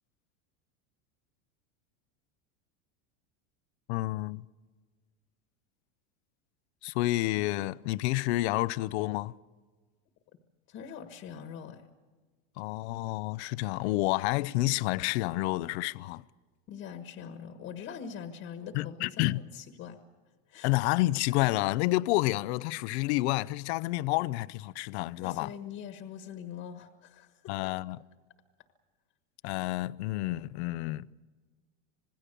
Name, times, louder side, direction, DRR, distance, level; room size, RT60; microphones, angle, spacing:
voice 1, 3.9-4.4 6.8-9.3 12.6-16.2 18.7-19.4 20.6-25.5 27.5-28.0 29.4-31.1, left 18 dB, 60° left, 0.7 m, -29 dB
voice 2, 10.7-11.8 16.7-20.0 20.5-20.7 25.2-27.7, left 8 dB, 35° left, 1.5 m, -43 dB
26.5 x 20.5 x 6.8 m
supercardioid pair, 160°, 38 cm